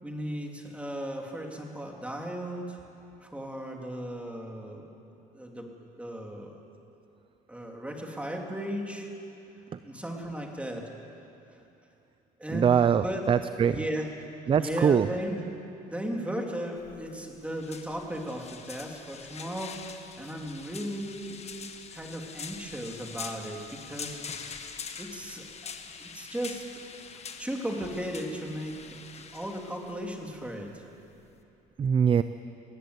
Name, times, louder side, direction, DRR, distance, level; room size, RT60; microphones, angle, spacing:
voice 1, 0.0-2.8 3.2-4.9 5.3-6.6 7.5-9.1 9.8-10.9 12.4-13.3 13.7-14.1 14.6-15.5 15.8-19.9 20.1-21.4 21.9-24.2 25.0-25.7 26.0-26.6 27.4-30.8, equal, 5° right, 1 dB, 3.0 m, -36 dB
voice 2, 12.5-13.8 14.5-15.1 31.8-32.2, right 7 dB, 30° right, 13 dB, 0.5 m, -23 dB
sound 1, 16.8-31.4, left 6 dB, 40° left, 1.4 m, -44 dB
20.5 x 18.0 x 8.2 m, 2.8 s
cardioid pair, 110°, 17 cm